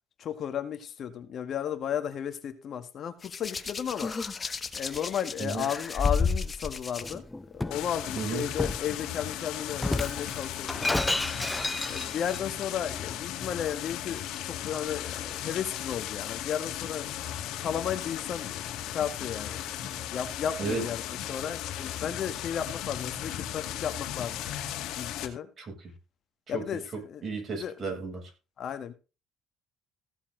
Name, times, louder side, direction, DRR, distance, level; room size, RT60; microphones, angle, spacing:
voice 1, 0.2-4.1 4.4-7.2 7.5-11.0 11.8-17.1 17.6-19.6 20.1-24.4 25.0-25.5 26.5-27.2 27.6-27.7 28.6-28.9, left 9 dB, 55° left, 1.7 m, -34 dB
Hands, 3.2-7.1 8.2-8.4, left 5 dB, 30° left, 1.4 m, -32 dB
Shatter, 7.0-7.8 8.6-8.9 9.8-12.4, left 2 dB, 10° left, 0.5 m, -31 dB
sound 1, 7.7-25.3, left 11 dB, 80° left, 2.2 m, -36 dB
voice 2, 8.1-8.5 20.6-20.8 25.6-25.9 26.5-26.6 27.2-28.3, right 4 dB, 40° right, 7.5 m, -33 dB
16.5 x 7.1 x 4.0 m
cardioid pair, 95°, 0 cm